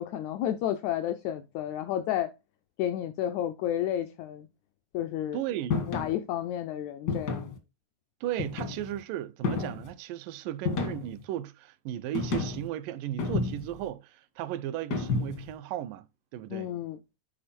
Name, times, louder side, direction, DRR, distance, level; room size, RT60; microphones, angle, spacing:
voice 1, 0.0-2.3 2.8-4.5 4.9-5.4 5.9-7.5 16.5-17.0, left 11 dB, 90° left, 1.6 m, -31 dB
voice 2, 5.3-5.8 8.2-16.1 16.3-16.7, right 12 dB, 80° right, 2.2 m, -35 dB
sound 1, 5.7-6.1 7.1-7.6 8.4-9.0 9.4-9.9 10.7-11.2 12.1-12.7 13.2-13.8 14.9-15.5, left 4 dB, 70° left, 1.0 m, -31 dB
10.0 x 4.3 x 4.3 m
omnidirectional pair, 4.0 m